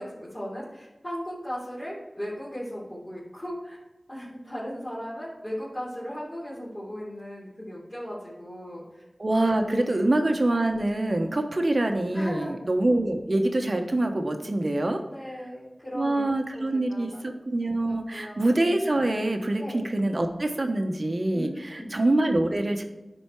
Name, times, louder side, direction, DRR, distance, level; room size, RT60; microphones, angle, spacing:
voice 1, 0.0-3.8 4.1-9.0 9.4-9.5 9.8-10.0 12.1-12.6 15.1-16.2 16.5-16.6 16.9-17.2 17.6-18.5 19.6-19.9 21.3-21.9, equal, 30° left, -9 dB, 3.2 m, -37 dB
voice 2, 9.2-15.0 15.9-22.8, right 1 dB, 55° right, 5 dB, 1.0 m, -25 dB
10.5 x 4.4 x 4.6 m, 1.0 s
wide cardioid pair, 50°, 0 cm